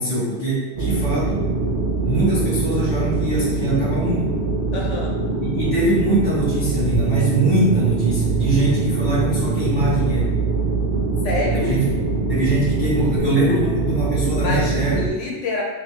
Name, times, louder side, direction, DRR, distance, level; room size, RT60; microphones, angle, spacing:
voice 1, 0.0-1.5 2.0-4.4 5.4-10.4 11.5-11.9 12.3-15.0, right 1 dB, 20° left, -9 dB, 1.1 m, -22 dB
sound 1, 0.8-15.1, right 3 dB, 50° right, 0.7 m, -23 dB
voice 2, 4.7-5.1 11.2-11.7 14.4-15.6, left 2 dB, 80° left, -2 dB, 1.1 m, -26 dB
Bass guitar, 6.9-13.2, right 12 dB, 80° right, 0.9 m, -28 dB
3.1 x 3.1 x 2.8 m, 1.3 s
omnidirectional pair, 1.2 m